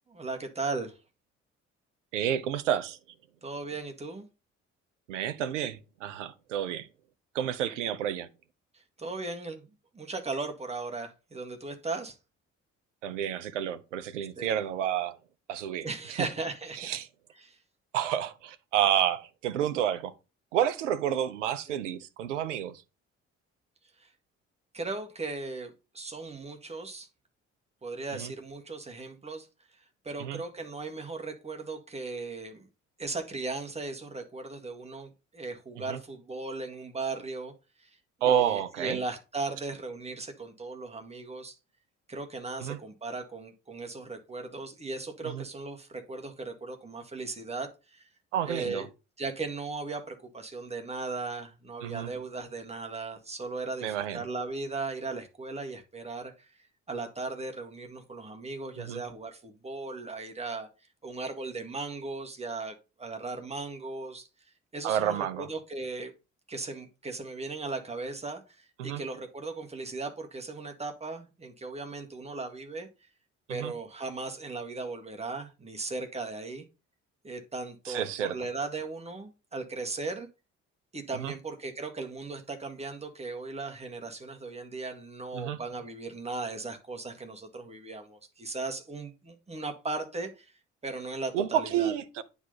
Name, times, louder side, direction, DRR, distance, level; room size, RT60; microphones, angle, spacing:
voice 1, 0.1-1.0 3.4-4.2 8.7-12.2 14.4-14.6 15.8-17.0 17.4-17.6 24.0-24.1 24.7-27.1 27.8-29.5 30.0-32.7 33.0-37.5 37.8-37.9 38.2-41.6 42.1-48.0 48.4-48.9 49.2-56.5 56.9-60.7 61.0-64.3 64.7-66.1 66.5-72.9 73.5-76.7 77.2-80.3 80.9-90.5 90.8-91.9, right 3 dB, 15° right, 2.0 m, -37 dB
voice 2, 2.1-3.0 5.1-6.9 7.3-8.3 13.0-15.1 15.5-16.3 16.8-17.1 17.9-20.1 20.5-22.7 28.1-28.3 30.2-30.4 35.9-36.0 38.2-39.0 42.6-42.8 45.2-45.5 48.3-48.9 51.8-52.1 53.8-54.2 58.8-59.0 64.8-65.5 68.8-69.0 73.5-73.7 77.9-78.3 81.1-81.3 85.3-85.6 91.3-92.2, right 10 dB, 75° right, 0.8 m, -30 dB
9.5 x 4.1 x 5.5 m
figure-of-eight pair, 45°, 37 cm